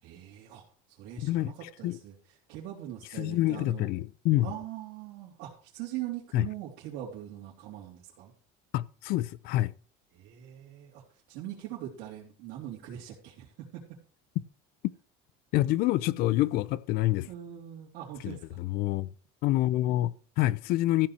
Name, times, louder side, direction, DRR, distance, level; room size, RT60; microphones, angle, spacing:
voice 1, 0.0-2.2 2.5-3.9 4.4-8.3 10.1-13.8 17.3-18.6, right 12 dB, 75° right, 3.5 m, -42 dB
voice 2, 1.2-2.0 3.2-4.5 6.3-6.4 8.7-9.7 15.5-17.3 18.2-19.1 19.4-21.1, left 16 dB, 60° left, 0.6 m, -27 dB
14.5 x 5.9 x 6.2 m
cardioid pair, 170°, 18 cm